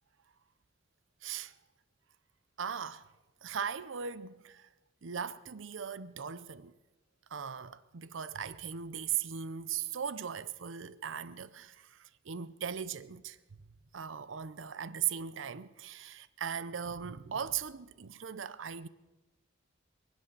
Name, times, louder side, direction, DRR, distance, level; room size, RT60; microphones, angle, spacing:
voice 1, 1.2-1.5 2.6-3.1 3.4-4.7 5.0-6.7 7.3-13.4 13.9-18.9, right 8 dB, 75° right, 0.6 m, -38 dB
23.0 x 8.3 x 6.8 m
head